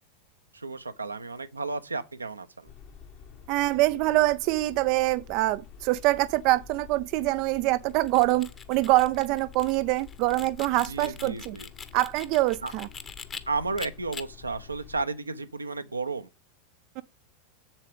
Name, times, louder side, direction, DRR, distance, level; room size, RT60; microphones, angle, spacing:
voice 1, 0.5-2.7 10.9-11.7 12.6-12.7 13.5-16.3, right 3 dB, 85° right, 0.8 m, -33 dB
sound 1, 2.6-15.0, left 8 dB, 45° left, 1.3 m, -49 dB
voice 2, 3.5-11.6 11.9-12.9 17.0-17.1, right 18 dB, 50° right, 0.4 m, -25 dB
sound 2, 7.9-13.4 13.8-14.2, left 6 dB, 25° left, 1.1 m, -43 dB
7.4 x 7.4 x 4.9 m
figure-of-eight pair, 90°, 0 cm